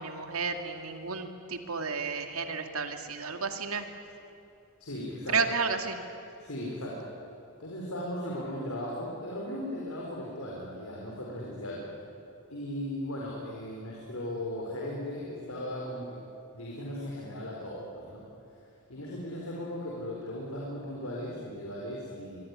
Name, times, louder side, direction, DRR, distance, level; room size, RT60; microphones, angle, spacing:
voice 1, 0.0-3.9 5.3-6.0, right 5 dB, 90° right, 6 dB, 2.4 m, -32 dB
voice 2, 4.8-5.4 6.4-7.1 7.6-11.8 12.5-16.2 16.5-18.2 18.9-22.4, left 1 dB, 85° left, -3 dB, 4.9 m, -37 dB
24.0 x 23.5 x 9.9 m, 2.7 s
head